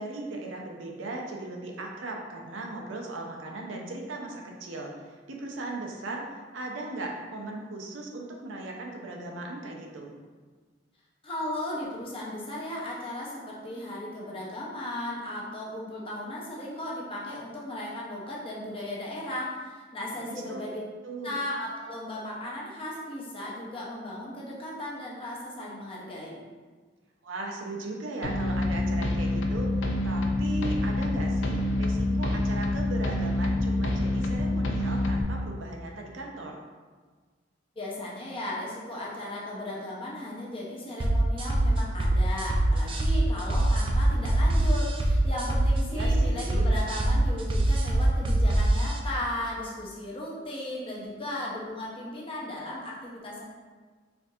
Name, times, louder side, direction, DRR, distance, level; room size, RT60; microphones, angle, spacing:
voice 1, 0.0-6.2 6.5-10.1 20.3-20.6 21.0-21.4 27.2-29.7 30.0-36.6 45.9-46.7, right 2 dB, 85° right, 0 dB, 0.6 m, -37 dB
voice 2, 11.2-20.8 21.2-26.4 37.8-53.4, left 1 dB, 30° left, -5 dB, 0.7 m, -36 dB
sound 1, 28.2-35.2, left 2 dB, 75° left, 0.4 m, -27 dB
sound 2, 41.0-49.0, right 1 dB, 25° right, 0.3 m, -23 dB
4.4 x 2.4 x 2.7 m, 1.4 s
head